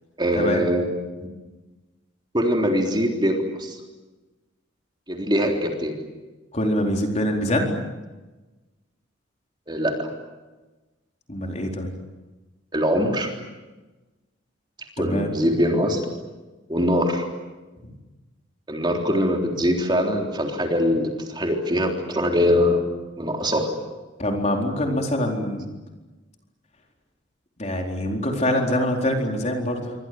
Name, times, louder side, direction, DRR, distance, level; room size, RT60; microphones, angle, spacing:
voice 1, 0.2-0.8 2.3-3.8 5.1-6.0 9.7-10.1 12.7-13.3 15.0-16.0 16.7-17.2 18.7-22.8 23.2-23.7, equal, 25° right, 2 dB, 3.6 m, -22 dB
voice 2, 6.5-7.7 11.3-11.9 15.0-15.3 17.8-17.9 24.2-25.7 27.6-29.9, left 1 dB, 35° left, 2 dB, 4.2 m, -24 dB
28.0 x 24.5 x 7.8 m, 1.2 s
head